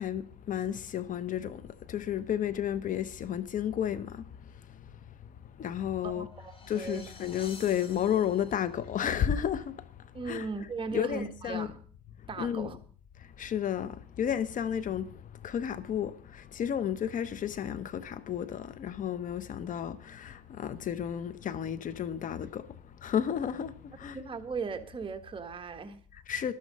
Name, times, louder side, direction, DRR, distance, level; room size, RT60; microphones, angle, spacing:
voice 1, 0.0-6.3 6.7-10.5 10.9-11.7 12.2-12.7 13.2-24.2 26.1-26.5, left 9 dB, 50° left, 0.9 m, -33 dB
voice 2, 6.0-7.1 10.1-11.8 12.3-12.8 24.1-26.0, right 4 dB, 30° right, 1.6 m, -37 dB
sound 1, 6.1-8.8, left 3 dB, 30° left, 2.6 m, -51 dB
13.0 x 12.5 x 5.4 m
cardioid pair, 110°, 17 cm